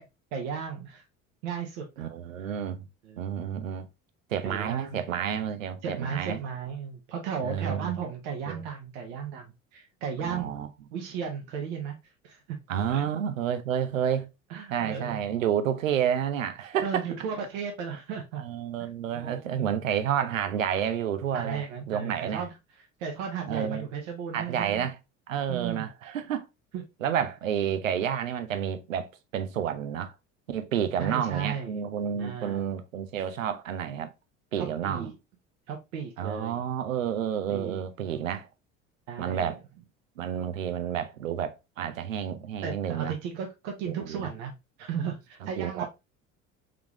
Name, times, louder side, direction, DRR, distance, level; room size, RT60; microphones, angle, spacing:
voice 1, 0.3-1.0 1.4-2.1 2.4-2.6 3.0-3.4 4.4-5.0 5.8-10.6 10.9-12.0 12.2-12.6 12.9-13.1 14.5-15.3 16.8-18.4 18.8-19.7 21.3-24.9 25.5-25.9 26.7-26.8 31.0-31.8 32.1-32.7 34.5-35.1 35.7-36.7 37.5-37.8 39.1-39.5 42.6-44.5 44.8-45.9, right 7 dB, 60° right, 1.0 m, -35 dB
voice 2, 2.0-2.9 3.2-3.9 4.3-6.4 7.4-7.9 8.5-8.6 10.2-10.7 12.7-14.3 14.7-17.0 18.4-22.4 23.5-23.8 24.3-25.0 25.3-26.5 27.0-30.1 30.5-34.1 34.5-35.1 36.2-38.5 39.2-39.6 40.2-43.1 43.9-44.3 45.6-45.9, right 9 dB, 80° right, 0.6 m, -30 dB
3.7 x 3.5 x 2.9 m
figure-of-eight pair, 65°, 39 cm